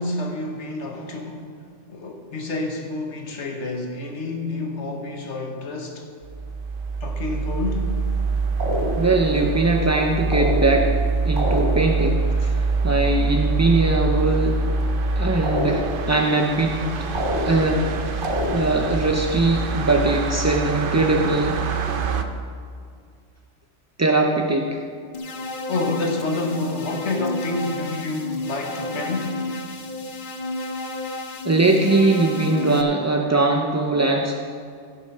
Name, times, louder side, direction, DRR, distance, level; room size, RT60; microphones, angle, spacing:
voice 1, 0.0-1.5 1.9-6.1 7.0-8.0 12.4-12.6 25.7-29.4, left 2 dB, 70° left, 2 dB, 1.5 m, -28 dB
sound 1, 6.2-22.2, right 4 dB, 55° right, 0.8 m, -25 dB
sound 2, 8.6-9.3 10.3-11.0 11.4-12.1 15.4-16.2 17.1-17.9 18.2-18.9, left 1 dB, 75° right, 2.8 m, -27 dB
voice 2, 9.0-10.9 11.2-12.2 12.5-14.6 15.2-17.1 17.4-17.8 18.1-18.2 18.5-21.6 24.0-24.8 31.4-34.4, right 2 dB, 25° right, 1 dB, 0.3 m, -21 dB
sound 3, 25.1-32.8, left 2 dB, 50° left, 0.9 m, -31 dB
15.0 x 6.2 x 5.5 m, 2.2 s
omnidirectional pair, 1.2 m